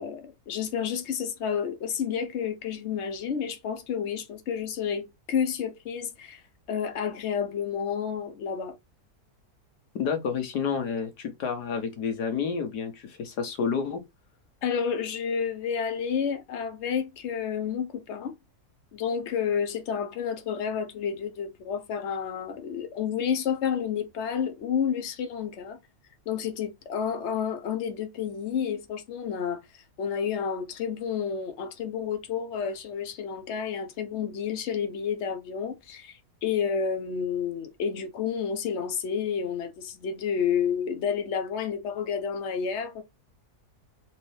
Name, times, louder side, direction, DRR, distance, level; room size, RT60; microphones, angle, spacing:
voice 1, 0.0-6.4 6.7-8.7 14.6-18.3 18.9-25.8 26.3-29.6 30.0-43.0, left 7 dB, 50° left, 1.0 m, -30 dB
voice 2, 9.9-14.0, left 6 dB, 80° left, 1.6 m, -29 dB
4.3 x 3.3 x 3.2 m
omnidirectional pair, 1.7 m